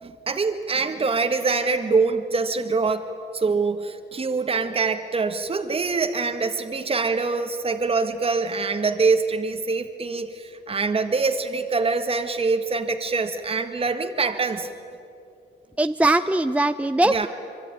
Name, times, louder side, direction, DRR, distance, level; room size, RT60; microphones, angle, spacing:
voice 1, 0.0-14.7 17.1-17.3, right 4 dB, 30° right, 5 dB, 1.6 m, -24 dB
voice 2, 15.8-17.3, right 2 dB, 5° right, 9 dB, 0.7 m, -20 dB
24.5 x 24.0 x 9.8 m, 2.6 s
cardioid pair, 90°, 20 cm